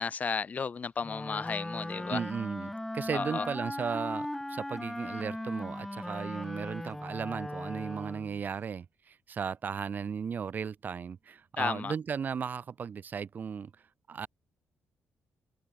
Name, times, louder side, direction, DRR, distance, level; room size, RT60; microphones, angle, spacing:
voice 1, 0.0-2.2 3.1-3.5 11.6-11.9, left 5 dB, 35° left, 1.5 m, -33 dB
Wind instrument woodwind instrument, 1.0-8.4, left 1 dB, 5° left, 0.8 m, -38 dB
voice 2, 2.1-13.7 14.1-14.3, right 6 dB, 45° right, 1.0 m, -36 dB
open air
cardioid pair, 120°, 4 cm